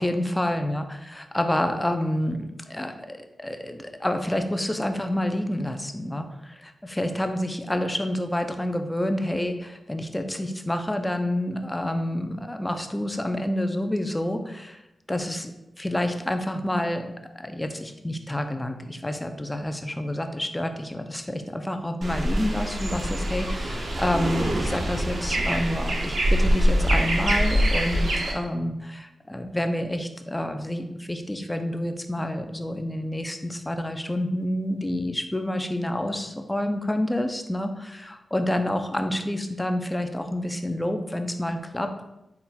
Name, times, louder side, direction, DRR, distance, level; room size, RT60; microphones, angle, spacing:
voice 1, 0.0-14.8 15.1-15.5 15.8-17.1 17.3-42.0, left 1 dB, 15° left, 6 dB, 0.4 m, -28 dB
sound 1, 22.0-28.3, equal, 65° right, 0.7 m, -24 dB
4.1 x 3.8 x 2.3 m, 0.90 s
cardioid pair, 60°, 0 cm